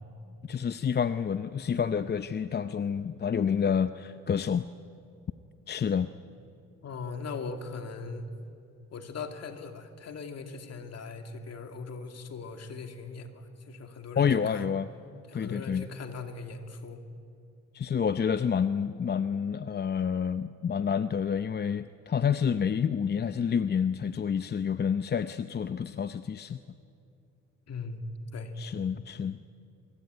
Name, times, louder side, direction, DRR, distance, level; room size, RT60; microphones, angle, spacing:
voice 1, 0.5-4.6 5.7-6.1 14.2-14.9 15.3-15.9 17.7-26.6 28.6-29.4, left 7 dB, 35° left, 11 dB, 0.7 m, -28 dB
voice 2, 6.8-8.3 8.9-14.7 15.3-17.0 27.7-28.1 28.3-28.5, left 4 dB, 55° left, 6 dB, 2.6 m, -39 dB
24.0 x 23.5 x 9.5 m, 2.6 s
cardioid pair, 90°, 30 cm